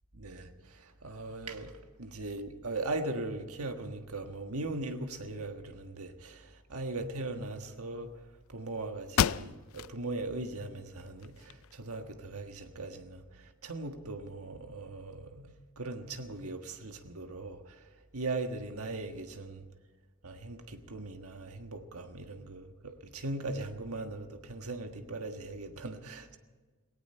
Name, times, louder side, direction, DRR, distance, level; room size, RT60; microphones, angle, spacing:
voice 1, 0.1-1.7 2.0-8.1 8.5-17.8 18.1-19.6 20.2-26.4, right 2 dB, 80° right, 1.5 m, -39 dB
sound 1, 8.6-8.7 9.1-10.0 10.4-10.5 11.1-12.0, left 8 dB, 70° left, 0.4 m, -31 dB
18.0 x 18.0 x 4.4 m
head